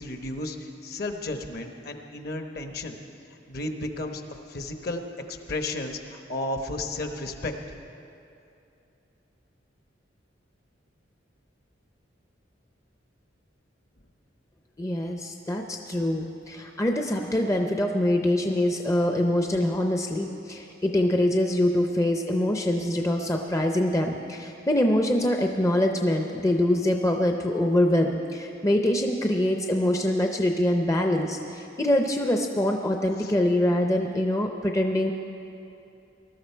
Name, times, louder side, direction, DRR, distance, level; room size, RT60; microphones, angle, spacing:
voice 1, 0.0-3.0 3.5-4.2 4.5-5.0 5.3-7.5 33.2-33.3, left 2 dB, 50° left, 5 dB, 1.0 m, -33 dB
voice 2, 14.8-35.1, left 1 dB, 15° left, 3 dB, 0.5 m, -24 dB
20.0 x 12.5 x 4.5 m, 2.7 s
head